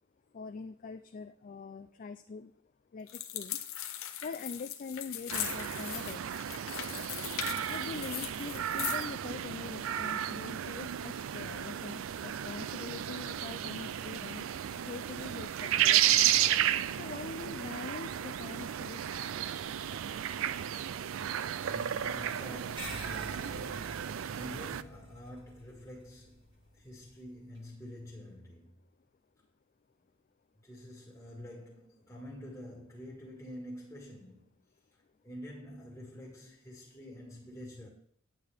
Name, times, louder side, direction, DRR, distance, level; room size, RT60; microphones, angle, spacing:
voice 1, 0.3-2.5 2.9-3.6 4.2-6.5 7.6-14.5 14.8-16.2 16.9-19.4, left 4 dB, 40° left, 0.3 m, -43 dB
sound 1, 3.1-9.1, left 11 dB, 80° left, 0.8 m, -40 dB
sound 2, 5.3-24.8, right 10 dB, 70° right, 0.4 m, -33 dB
voice 2, 21.5-26.5 26.7-28.8 30.6-34.6 34.9-37.9, equal, 10° left, 1.6 m, -48 dB
sound 3, 22.8-27.6, equal, 25° right, 1.7 m, -48 dB
9.3 x 8.4 x 3.4 m
head